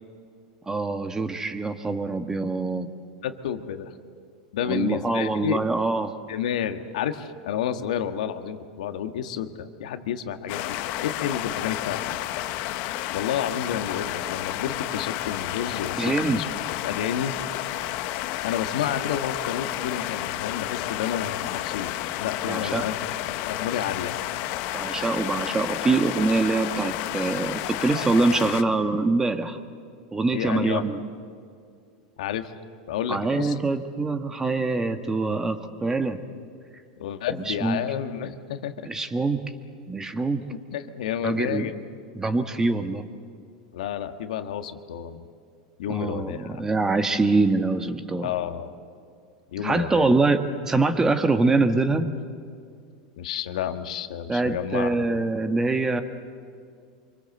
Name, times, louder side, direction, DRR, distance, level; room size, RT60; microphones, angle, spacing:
voice 1, 0.7-2.9 4.6-6.1 16.0-16.4 22.5-22.8 24.7-29.6 30.1-31.0 33.1-36.2 37.5-37.8 38.8-39.4 39.9-40.4 41.2-41.7 42.1-43.1 45.9-48.3 49.6-52.1 54.3-56.0, right 3 dB, 15° right, 8 dB, 1.6 m, -24 dB
voice 2, 3.2-3.9 4.5-5.6 6.3-12.0 13.1-16.5 16.8-17.4 18.4-21.9 22.2-22.9 23.3-24.1 30.3-30.8 32.2-32.5 32.9-33.6 37.0-38.9 40.7-41.7 43.7-45.2 45.8-46.6 48.2-48.7 49.5-50.1 53.2-54.9, left 9 dB, 75° left, 8 dB, 1.6 m, -30 dB
sound 1, 10.5-28.6, left 14 dB, 55° left, 1.2 m, -31 dB
26.0 x 24.0 x 7.8 m, 2.2 s
hypercardioid pair, 115°, 4 cm